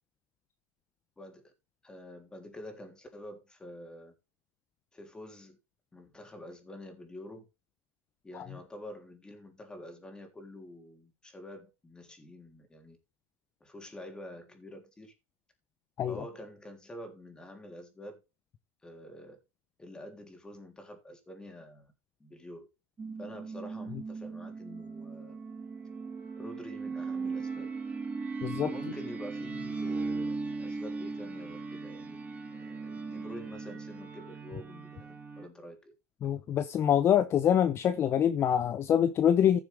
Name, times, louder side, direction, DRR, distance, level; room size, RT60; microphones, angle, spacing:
voice 1, 1.2-1.5 1.8-4.1 4.9-5.6 5.9-7.5 8.2-13.0 13.6-15.1 16.1-18.2 18.8-19.4 19.8-21.9 22.2-22.7 23.2-25.4 26.4-27.7 28.6-32.2 32.5-35.9, left 1 dB, 10° left, 3.5 m, -47 dB
sound 1, 23.0-35.4, right 4 dB, 20° right, 2.2 m, -38 dB
voice 2, 28.4-28.7 36.2-39.6, left 9 dB, 35° left, 0.7 m, -25 dB
15.0 x 7.1 x 3.5 m
supercardioid pair, 120°, 7 cm